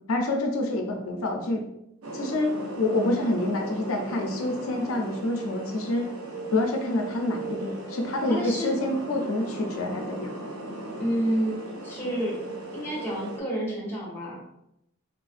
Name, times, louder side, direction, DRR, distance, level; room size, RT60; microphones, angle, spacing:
voice 1, 0.1-1.6 2.1-6.1 6.5-10.3, left 2 dB, 80° left, 2 dB, 0.4 m, -27 dB
sound 1, 2.0-13.4, right 2 dB, 85° right, 0.6 m, -37 dB
voice 2, 8.3-8.7 11.0-12.4 12.7-14.4, equal, 10° left, -5 dB, 0.9 m, -29 dB
3.4 x 2.4 x 2.5 m, 0.81 s
head